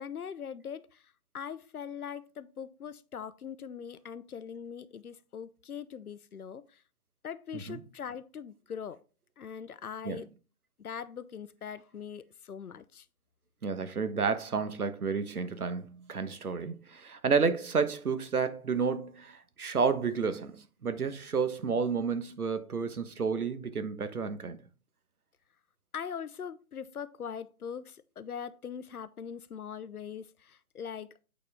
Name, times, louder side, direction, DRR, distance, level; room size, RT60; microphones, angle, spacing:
voice 1, 0.0-6.8 7.2-9.0 9.4-10.3 10.8-13.1 25.9-31.1, left 7 dB, 80° left, 0.8 m, -41 dB
voice 2, 13.6-24.6, right 5 dB, 90° right, 1.2 m, -31 dB
8.4 x 4.4 x 3.5 m
figure-of-eight pair, 150°, 44 cm